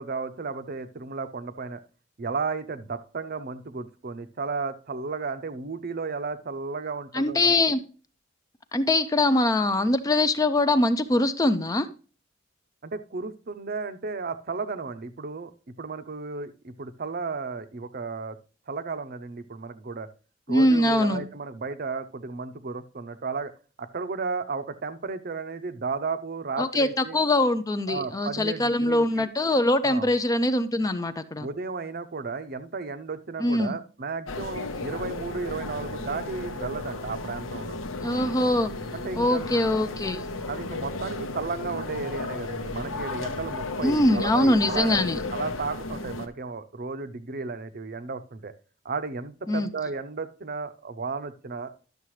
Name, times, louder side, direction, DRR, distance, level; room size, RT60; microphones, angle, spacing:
voice 1, 0.0-1.8 2.2-7.6 12.8-15.5 15.8-18.4 18.7-20.1 20.5-23.5 23.8-27.2 27.9-29.3 29.8-30.1 31.4-37.8 38.9-39.5 40.5-45.0 45.3-48.5 48.8-51.7, right 4 dB, 50° right, 10 dB, 0.6 m, -34 dB
voice 2, 7.1-7.8 8.7-11.9 20.5-21.3 26.6-31.5 33.4-33.8 38.0-38.7 39.2-40.3 43.8-45.2 49.5-49.7, left 1 dB, 15° left, 11 dB, 0.4 m, -23 dB
sound 1, 34.3-46.3, left 3 dB, 85° left, 0.9 m, -34 dB
11.5 x 6.7 x 3.1 m, 0.37 s
head